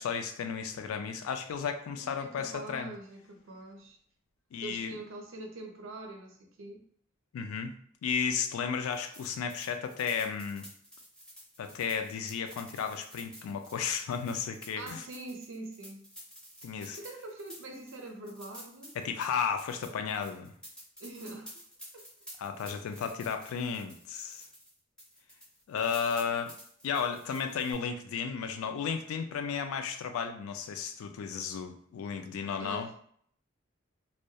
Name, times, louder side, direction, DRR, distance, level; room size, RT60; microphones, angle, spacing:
voice 1, 0.0-2.9 4.5-4.9 7.3-7.7 8.0-10.7 11.6-15.0 16.6-17.0 19.0-20.5 22.4-24.5 25.7-26.5 26.8-32.9, left 6 dB, 80° left, 7 dB, 0.3 m, -33 dB
voice 2, 2.0-4.0 4.6-6.8 14.8-16.0 16.7-19.0 21.0-21.6 21.9-22.1 22.9-23.0 32.6-33.0, right 2 dB, 65° right, 3 dB, 0.5 m, -44 dB
sound 1, 8.9-24.7 25.0-27.7, equal, 5° left, 0.4 m, -51 dB
2.2 x 2.1 x 2.7 m, 0.63 s
head